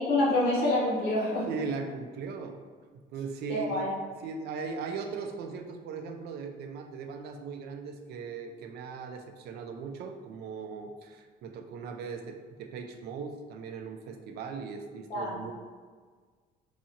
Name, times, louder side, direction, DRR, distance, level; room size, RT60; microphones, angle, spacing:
voice 1, 0.0-1.5 3.5-3.9 15.1-15.4, left 1 dB, 80° left, -4 dB, 0.9 m, -27 dB
voice 2, 1.5-2.6 2.9-3.9 4.2-15.5, right 5 dB, 70° right, 5 dB, 0.4 m, -38 dB
2.8 x 2.3 x 2.7 m, 1.5 s
cardioid pair, 110°, 17 cm